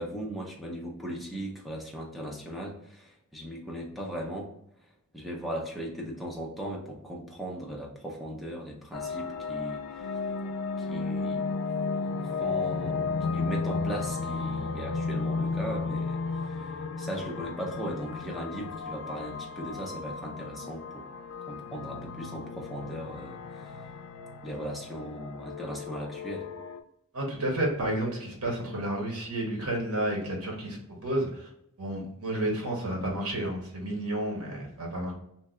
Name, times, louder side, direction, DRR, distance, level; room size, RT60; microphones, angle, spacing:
voice 1, 0.0-4.5 5.1-10.2 10.8-11.5 12.2-13.0 13.3-21.1 21.5-23.8 24.4-26.5, equal, ahead, -2 dB, 0.5 m, -38 dB
sound 1, 8.9-26.8, left 4 dB, 85° left, 0.3 m, -34 dB
voice 2, 27.1-31.4 31.8-35.1, right 1 dB, 85° right, -1 dB, 1.0 m, -31 dB
2.7 x 2.2 x 3.6 m, 0.75 s
head